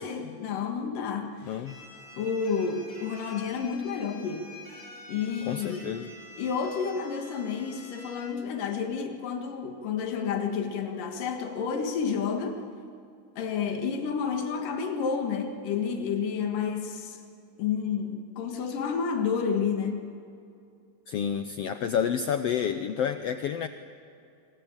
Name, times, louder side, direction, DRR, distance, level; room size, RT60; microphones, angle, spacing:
voice 1, 0.0-1.6 2.2-4.5 5.1-6.0 6.4-12.6 13.4-17.2 17.6-20.1, left 6 dB, 90° left, 4 dB, 3.4 m, -30 dB
voice 2, 1.4-1.8 5.4-6.1 21.1-23.7, left 8 dB, 70° left, 9 dB, 1.5 m, -29 dB
sound 1, 1.7-8.3, left 1 dB, 35° left, 5.1 m, -48 dB
25.0 x 25.0 x 8.9 m, 2.6 s
omnidirectional pair, 3.7 m